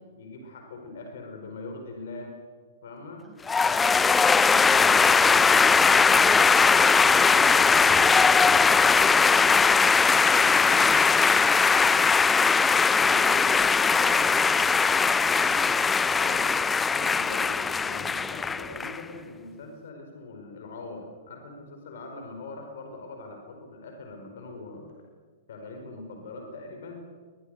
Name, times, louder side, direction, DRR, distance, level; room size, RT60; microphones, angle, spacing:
voice 1, 0.2-2.3 2.8-3.3 7.0-9.8 10.1-11.3 11.7-12.1 13.1-13.4 16.1-16.5 16.9-24.9 25.5-27.1, left 2 dB, 60° left, 3 dB, 5.0 m, -41 dB
voice 2, 3.0-3.4 3.7-6.4 12.3-12.5 13.0-15.8 16.1-16.7, right 3 dB, 15° right, 3 dB, 6.0 m, -46 dB
sound 1, 3.5-19.0, left 5 dB, 15° left, 0.6 m, -20 dB
24.5 x 21.5 x 6.6 m, 1.5 s
figure-of-eight pair, 110°, 0 cm